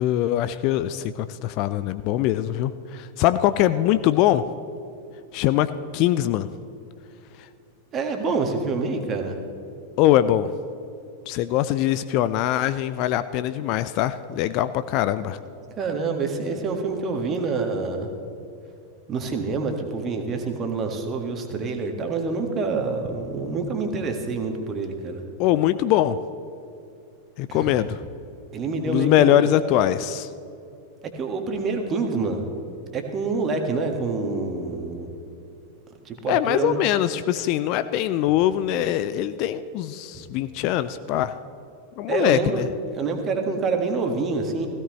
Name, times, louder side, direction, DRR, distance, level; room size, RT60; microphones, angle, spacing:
voice 1, 0.0-4.4 5.3-6.5 7.4-7.5 10.0-10.5 11.3-15.4 25.4-26.2 27.4-28.0 28.9-30.3 36.3-41.3 42.0-42.7, left 12 dB, 40° left, 14 dB, 0.4 m, -22 dB
voice 2, 7.9-9.4 15.8-18.1 19.1-25.2 27.5-27.7 28.5-29.5 31.1-32.5 32.9-35.1 36.0-36.8 40.1-40.2 42.1-42.6 43.0-44.7, right 4 dB, 25° right, 4 dB, 1.6 m, -27 dB
16.5 x 16.0 x 3.2 m, 2.7 s
figure-of-eight pair, 90°, 0 cm